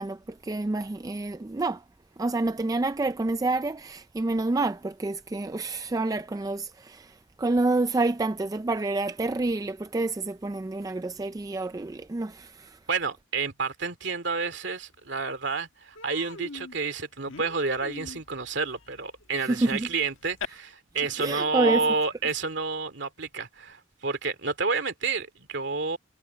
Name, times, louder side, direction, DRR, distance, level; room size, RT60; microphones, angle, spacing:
voice 1, 0.0-1.8 2.2-12.8 19.5-19.9 21.2-21.8, right 2 dB, 20° right, 0.3 m, -28 dB
voice 2, 12.9-26.0, right 4 dB, 60° right, 2.6 m, -30 dB
Human voice, 15.0-15.1 15.4-15.6 16.0-20.5, left 4 dB, 80° left, 1.5 m, -42 dB
head